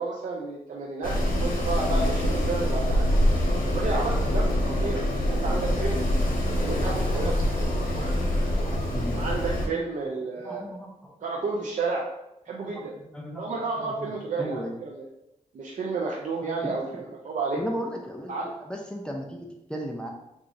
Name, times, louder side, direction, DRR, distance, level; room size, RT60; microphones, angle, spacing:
voice 1, 0.0-3.0 3.7-6.0 6.6-7.4 7.9-8.2 9.1-10.7 11.2-12.0 12.5-12.9 13.3-15.1 15.5-17.6 18.3-18.5, right 4 dB, 70° right, -2 dB, 0.5 m, -31 dB
Wind, 1.0-9.7, left 1 dB, 85° left, 0.8 m, -25 dB
voice 2, 8.4-9.2 10.4-11.2 12.6-13.5 13.8-14.1 14.4-14.7 16.4-17.1 17.6-20.1, equal, 5° left, 0 dB, 0.5 m, -36 dB
4.8 x 2.4 x 2.6 m, 0.87 s
cardioid pair, 85°, 14 cm